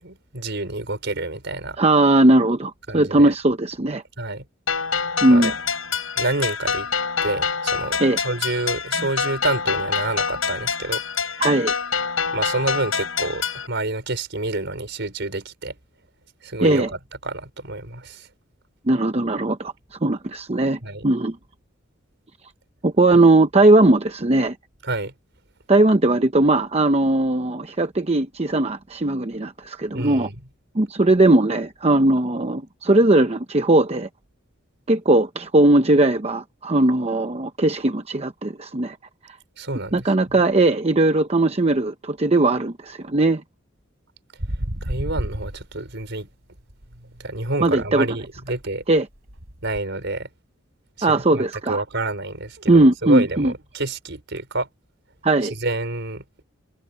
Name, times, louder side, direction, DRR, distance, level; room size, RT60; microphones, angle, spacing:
voice 1, 0.0-1.8 2.9-3.3 4.2-4.5 5.3-5.5 6.2-6.9 7.2-11.4 12.3-15.8 16.4-16.9 17.2-18.3 20.8-21.1 23.1-23.2 24.8-25.1 29.9-30.4 39.6-40.4 44.8-46.3 47.2-48.8 49.6-50.3 51.0-54.7 55.4-56.2, right 2 dB, 60° right, 5.2 m, -28 dB
voice 2, 1.8-4.0 5.2-5.5 8.0-8.2 11.4-11.7 16.6-16.9 18.9-21.4 22.8-24.6 25.7-30.3 30.7-34.1 34.9-39.0 39.9-43.4 47.6-48.1 48.9-49.1 51.0-51.8 52.7-53.5 55.2-55.5, right 2 dB, 30° right, 0.9 m, -18 dB
sound 1, 4.7-13.7, left 6 dB, 85° left, 6.2 m, -26 dB
sound 2, 44.4-46.2 46.6-49.8, equal, 90° right, 4.9 m, -33 dB
head